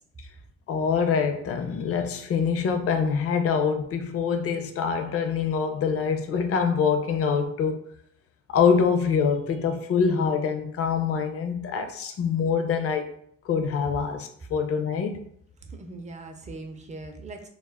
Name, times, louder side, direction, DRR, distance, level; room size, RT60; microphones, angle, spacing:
voice 1, 0.7-7.8 8.5-13.1 13.4-15.1, left 6 dB, 50° left, 7 dB, 0.5 m, -25 dB
voice 2, 15.6-17.5, right 2 dB, 25° right, 4 dB, 0.5 m, -40 dB
2.2 x 2.0 x 3.3 m, 0.65 s
cardioid pair, 90°, 30 cm